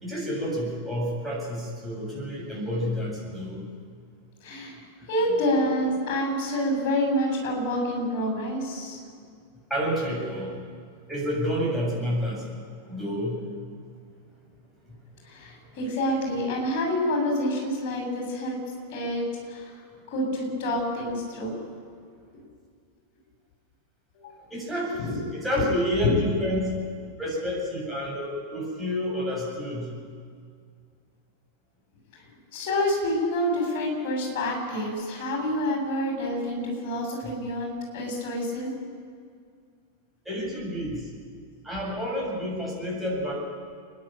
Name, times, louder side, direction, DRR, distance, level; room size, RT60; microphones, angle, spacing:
voice 1, 0.0-3.7 5.0-5.1 9.7-10.7 11.1-13.5 14.9-15.0 24.5-25.0 25.3-26.8 27.2-29.9 37.2-37.3 40.2-41.1 41.6-43.3, equal, 5° right, -4 dB, 7.7 m, -29 dB
voice 2, 4.4-4.8 5.1-9.0 15.2-18.6 18.9-19.8 20.1-21.6 24.2-24.4 25.0-25.2 26.0-26.1 32.5-38.8, left 1 dB, 45° left, 0 dB, 7.8 m, -27 dB
30.0 x 11.0 x 9.1 m, 2.2 s
figure-of-eight pair, 90°, 0 cm